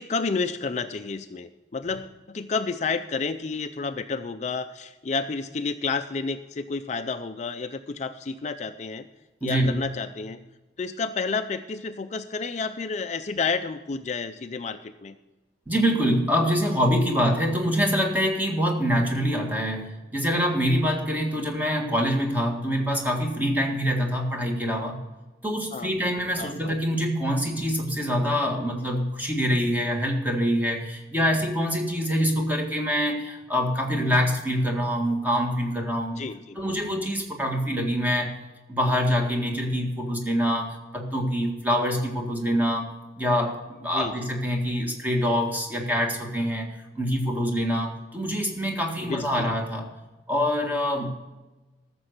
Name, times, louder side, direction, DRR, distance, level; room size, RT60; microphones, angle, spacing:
voice 1, 0.0-9.1 9.4-10.4 10.8-15.2 19.0-19.1 25.7-26.7 36.2-36.6 43.9-44.1 49.1-49.4, left 4 dB, 40° left, 9 dB, 0.5 m, -30 dB
voice 2, 9.4-9.7 15.7-25.0 25.4-36.2 36.5-38.3 38.7-49.9 50.3-51.1, equal, 10° right, 2 dB, 1.8 m, -25 dB
14.0 x 6.9 x 6.5 m, 1.1 s
head